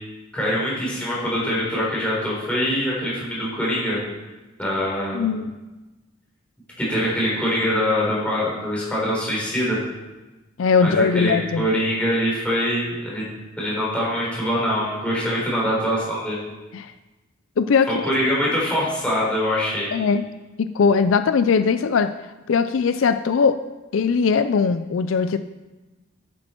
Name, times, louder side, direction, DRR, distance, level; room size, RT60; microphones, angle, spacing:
voice 1, 0.3-4.0 4.6-5.3 6.8-9.8 10.8-13.2 13.6-16.4 17.9-19.9, equal, 5° left, -6 dB, 3.9 m, -23 dB
voice 2, 5.1-5.5 10.6-11.7 16.7-16.9 17.6-18.1 19.9-20.2 20.6-22.1 22.5-23.6 23.9-25.4, left 5 dB, 75° left, 11 dB, 0.4 m, -20 dB
10.5 x 8.7 x 4.5 m, 1.1 s
head